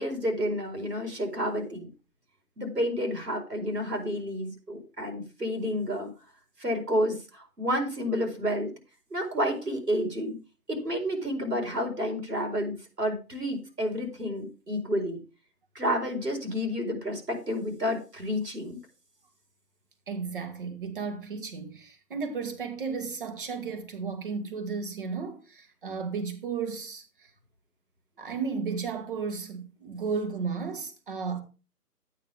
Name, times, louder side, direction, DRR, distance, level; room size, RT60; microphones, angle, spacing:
voice 1, 0.0-1.9 2.6-6.1 6.6-8.7 9.1-10.4 10.7-15.2 15.7-18.8, equal, 80° right, 4.5 m, -30 dB
voice 2, 20.1-27.3 28.2-31.4, right 5 dB, 35° right, 2.0 m, -34 dB
12.0 x 9.2 x 3.6 m
figure-of-eight pair, 145°, 47 cm